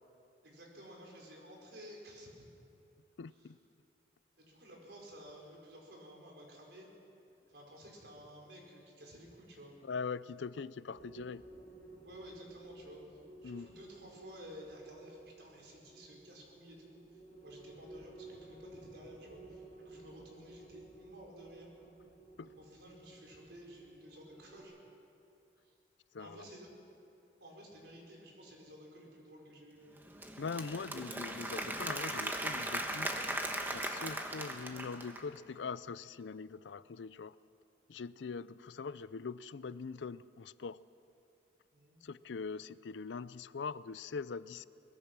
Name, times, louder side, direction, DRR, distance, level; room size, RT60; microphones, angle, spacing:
voice 1, 0.4-2.5 3.3-3.5 4.4-6.9 7.5-9.8 12.0-21.7 22.4-24.7 25.6-25.7 26.2-26.7 27.4-30.0 41.7-42.0, equal, 70° right, -1 dB, 4.9 m, -53 dB
voice 2, 3.2-3.6 9.8-11.4 13.4-13.7 22.4-22.5 26.1-26.4 30.4-33.2 33.7-37.4 37.9-40.8 42.0-44.7, left 5 dB, 85° left, 18 dB, 0.5 m, -42 dB
sound 1, 10.9-24.6, right 2 dB, 30° left, 5.9 m, -55 dB
Applause / Crowd, 30.0-35.4, right 1 dB, 10° right, 1.2 m, -38 dB
23.0 x 20.5 x 6.1 m, 2.7 s
head